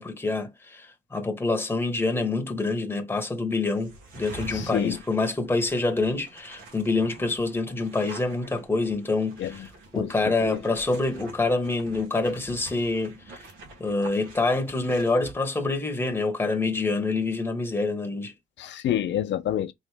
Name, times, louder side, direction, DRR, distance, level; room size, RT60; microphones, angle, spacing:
voice 1, 0.0-13.4 13.8-18.3, left 3 dB, 10° left, 1.0 m, -26 dB
sound 1, 3.7-15.3, right 2 dB, 90° right, 1.5 m, -46 dB
voice 2, 4.5-5.0 9.4-9.5 10.0-10.1 10.4-10.6 18.6-19.7, left 11 dB, 65° left, 0.6 m, -27 dB
3.7 x 3.1 x 3.4 m
cardioid pair, 90°, 20 cm